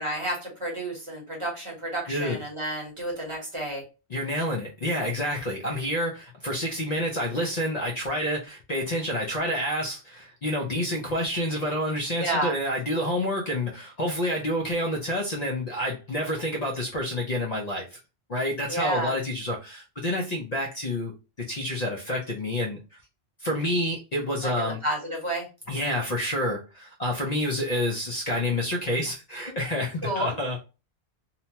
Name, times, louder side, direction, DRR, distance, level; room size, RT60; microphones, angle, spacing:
voice 1, 0.0-3.8 12.2-12.5 18.7-19.1 24.4-25.5 30.0-30.3, right 1 dB, 30° right, -2 dB, 0.9 m, -30 dB
voice 2, 2.1-2.4 4.1-18.0 18.3-21.1 21.5-22.8 23.4-24.8 25.7-30.6, left 1 dB, 50° left, -1 dB, 0.6 m, -28 dB
2.8 x 2.1 x 2.8 m, 0.30 s
omnidirectional pair, 1.1 m